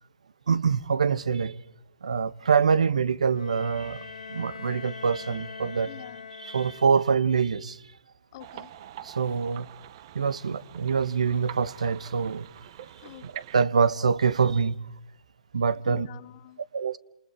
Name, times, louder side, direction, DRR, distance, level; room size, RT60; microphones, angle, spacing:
voice 1, 0.5-1.6 2.0-5.9 6.4-7.8 9.0-9.7 10.1-12.5 13.2-14.8 15.5-16.1 16.7-17.0, right 6 dB, 75° right, 1.1 m, -25 dB
Bowed string instrument, 3.3-7.3, left 6 dB, 75° left, 1.6 m, -43 dB
voice 2, 5.9-6.3 8.3-8.7 13.0-13.3 15.8-16.6, left 14 dB, 45° left, 1.6 m, -46 dB
sound 1, 8.4-13.7, right 12 dB, 45° right, 1.3 m, -45 dB
29.5 x 28.5 x 4.9 m
hypercardioid pair, 130°, 4 cm